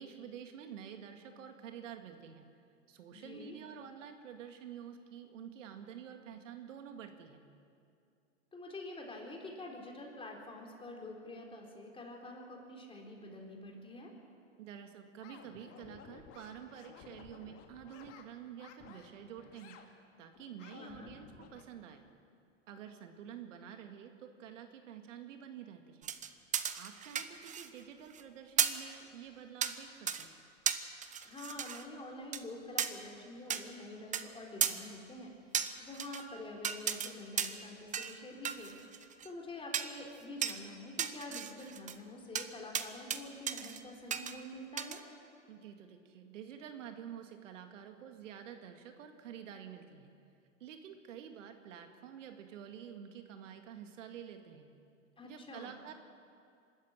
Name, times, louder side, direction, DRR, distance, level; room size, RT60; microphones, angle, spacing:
voice 1, 0.0-2.5 2.9-7.5 14.6-19.9 20.2-22.0 22.7-26.1 26.7-30.4 45.5-50.1 50.6-54.7 55.2-55.9, right 8 dB, 70° right, 6 dB, 2.0 m, -49 dB
voice 2, 3.1-3.6 8.5-14.1 20.8-21.1 31.2-45.0 55.2-55.7, left 2 dB, 15° left, 0 dB, 4.0 m, -47 dB
sound 1, 15.2-18.2 18.6-19.1 19.4-19.9 20.3-21.6, left 7 dB, 40° left, 2.3 m, -55 dB
sound 2, 26.0-27.8 28.1-28.2 28.6-28.9 29.6-29.8 30.1-30.3 30.7-31.8 32.3-32.4 32.8-32.9 33.5-33.6 34.1-34.2 34.6-34.7 35.5-36.2 36.6-37.1 37.4-37.6 37.9-38.2 38.5-39.3 39.7-39.9 40.4-40.6 41.0-42.0 42.4-42.5 42.7-43.2 43.5-43.8 44.1-44.3 44.8-45.0, right 8 dB, 20° right, 0.9 m, -35 dB
24.5 x 13.5 x 8.9 m, 2.5 s
hypercardioid pair, 115°, 39 cm